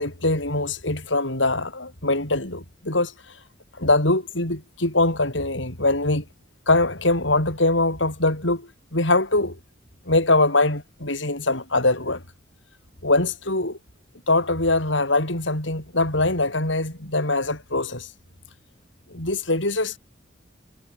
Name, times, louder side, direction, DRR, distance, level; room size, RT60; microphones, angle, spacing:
voice 1, 0.0-3.4 3.7-6.2 6.7-9.6 10.1-12.2 13.0-13.8 14.3-18.1 19.1-20.0, left 2 dB, 80° left, 7.9 m, -23 dB
head